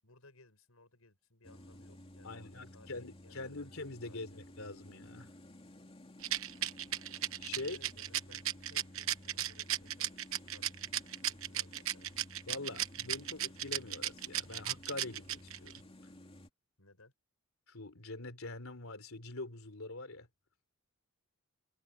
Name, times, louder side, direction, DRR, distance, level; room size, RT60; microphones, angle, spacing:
voice 1, 0.0-3.8 4.1-4.4 7.5-10.1 10.4-12.1 16.8-17.1, left 2 dB, 90° left, 7.1 m, -62 dB
sound 1, 1.4-16.5, left 1 dB, 25° left, 2.7 m, -55 dB
voice 2, 2.2-5.3 7.4-7.9 12.5-15.8 17.7-20.3, left 2 dB, 75° left, 3.6 m, -44 dB
Rattle, 6.2-15.8, right 12 dB, 70° right, 1.0 m, -35 dB
head